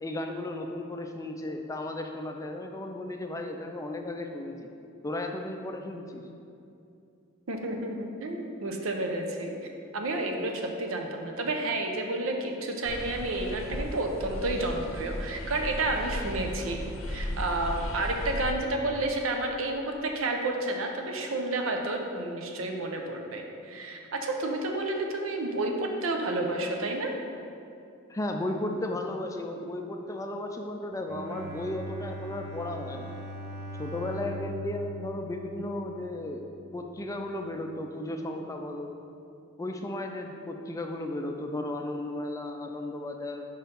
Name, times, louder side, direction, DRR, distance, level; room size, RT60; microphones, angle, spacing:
voice 1, 0.0-4.7 5.0-6.2 28.1-33.1 33.8-39.0 39.6-43.5, left 1 dB, 15° left, 4 dB, 0.3 m, -35 dB
voice 2, 7.5-9.6 9.9-16.8 17.1-27.2, right 2 dB, 90° right, 3 dB, 0.7 m, -30 dB
sound 1, 12.9-18.5, left 1 dB, 85° left, 0.6 m, -36 dB
Bowed string instrument, 31.0-36.3, equal, 55° right, 0.7 m, -40 dB
5.0 x 4.5 x 5.2 m, 2.6 s
head